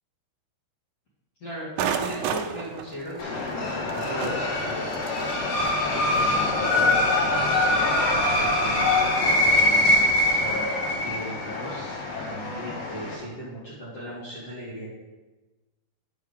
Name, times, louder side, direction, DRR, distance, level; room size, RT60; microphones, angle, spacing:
voice 1, 1.4-4.9 5.9-10.7 11.0-14.9, equal, 45° left, -9 dB, 2.5 m, -37 dB
sound 1, 1.8-7.1, right 8 dB, 85° right, 2.0 m, -34 dB
sound 2, 3.2-13.2, left 2 dB, 80° left, 3.7 m, -23 dB
10.0 x 5.4 x 5.1 m, 1.2 s
omnidirectional pair, 4.7 m